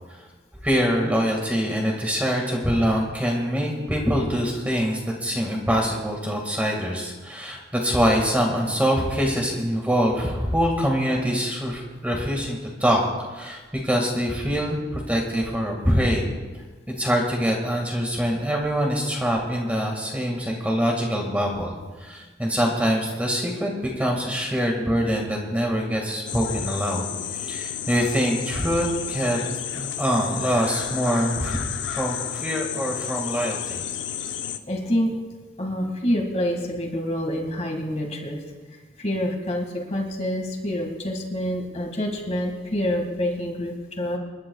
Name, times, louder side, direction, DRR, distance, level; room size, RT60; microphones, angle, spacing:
voice 1, 0.6-13.0 13.3-16.3 17.0-27.1 27.3-29.4 29.7-33.8, equal, 10° right, -1 dB, 1.9 m, -24 dB
sound 1, 26.3-34.6, left 9 dB, 80° left, 0.7 m, -31 dB
voice 2, 34.7-35.2 35.6-38.4 38.7-44.2, equal, 35° left, 1 dB, 2.0 m, -27 dB
28.0 x 11.5 x 2.4 m, 1.3 s
head